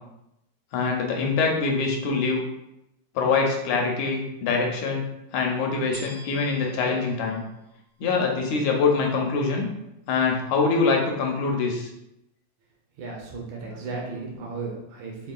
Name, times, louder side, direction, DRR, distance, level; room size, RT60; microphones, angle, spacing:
voice 1, 0.7-2.4 3.2-5.1 5.3-7.4 8.0-9.7 10.1-11.9, left 4 dB, 80° left, 0 dB, 1.9 m, -24 dB
sound 1, 5.9-8.3 9.0-9.1, right 2 dB, 55° right, 2.0 m, -47 dB
voice 2, 13.0-15.3, right 4 dB, 75° right, -1 dB, 2.0 m, -35 dB
5.3 x 3.5 x 2.3 m, 0.86 s
omnidirectional pair, 3.6 m